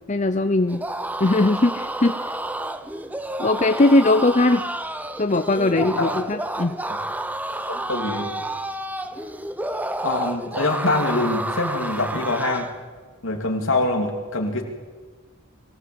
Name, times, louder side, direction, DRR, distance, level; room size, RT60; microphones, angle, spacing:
voice 1, 0.1-0.8 1.2-2.3 3.4-4.6 5.2-6.8, left 2 dB, 35° left, 9 dB, 0.6 m, -19 dB
sound 1, 0.7-12.8, right 1 dB, 5° right, 0.8 m, -30 dB
voice 2, 5.7-6.1 7.7-8.3 10.0-12.7 13.2-14.6, left 2 dB, 65° left, 3 dB, 3.1 m, -24 dB
24.0 x 16.0 x 8.0 m, 1.4 s
head